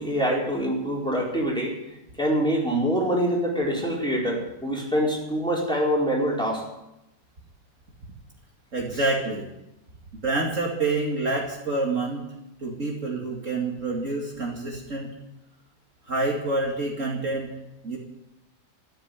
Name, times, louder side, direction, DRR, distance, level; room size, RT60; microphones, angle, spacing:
voice 1, 0.0-1.8 2.2-6.6, equal, 5° left, -4 dB, 4.6 m, -25 dB
voice 2, 8.7-9.5 10.1-12.2 12.6-15.1 16.1-17.5 17.8-18.0, right 2 dB, 45° right, -2 dB, 2.6 m, -27 dB
13.5 x 9.7 x 9.9 m, 0.90 s
omnidirectional pair, 1.8 m